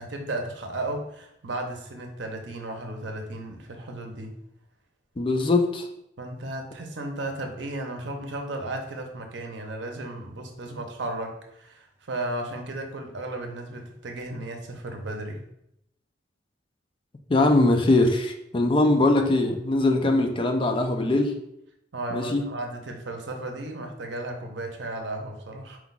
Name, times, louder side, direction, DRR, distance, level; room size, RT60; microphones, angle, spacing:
voice 1, 0.0-4.4 6.2-15.5 21.9-25.8, right 2 dB, 75° right, 3 dB, 0.7 m, -34 dB
voice 2, 5.2-5.9 17.3-21.3 22.1-22.4, left 2 dB, 30° left, 4 dB, 0.4 m, -21 dB
4.5 x 2.3 x 3.9 m, 0.80 s
head